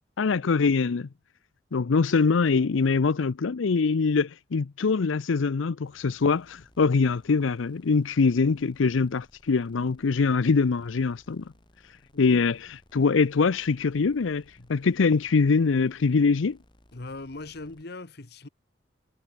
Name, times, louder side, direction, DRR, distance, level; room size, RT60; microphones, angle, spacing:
voice 1, 0.2-1.1 1.7-11.4 12.2-16.6, left 4 dB, 90° left, 0.6 m, -23 dB
sound 1, 5.8-17.8, equal, 25° left, 4.1 m, -60 dB
voice 2, 16.9-18.5, left 2 dB, 55° left, 1.3 m, -40 dB
head